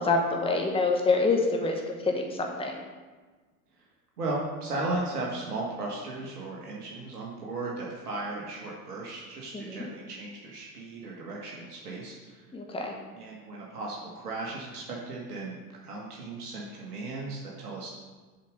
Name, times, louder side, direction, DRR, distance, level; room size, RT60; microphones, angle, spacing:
voice 1, 0.0-2.8 9.5-9.8 12.5-12.9, left 3 dB, 10° left, 1 dB, 1.3 m, -26 dB
voice 2, 4.2-12.5 13.1-15.6 15.8-17.9, right 2 dB, 75° right, -3 dB, 1.8 m, -36 dB
7.4 x 5.2 x 6.4 m, 1.3 s
figure-of-eight pair, 80°, 46 cm